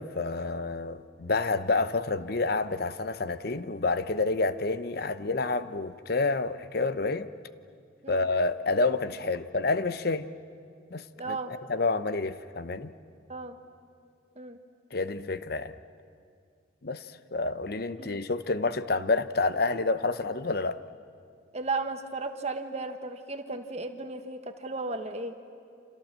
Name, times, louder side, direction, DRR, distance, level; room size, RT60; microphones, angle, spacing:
voice 1, 0.0-7.3 8.1-10.3 10.9-11.4 11.7-12.9 14.9-15.7 16.8-17.0 17.3-20.8, left 3 dB, 55° left, 0.8 m, -28 dB
voice 2, 11.2-11.5 13.3-13.6 14.4-14.6 18.0-18.2 21.5-25.4, right 3 dB, 35° right, 1.4 m, -35 dB
29.0 x 26.5 x 7.5 m
head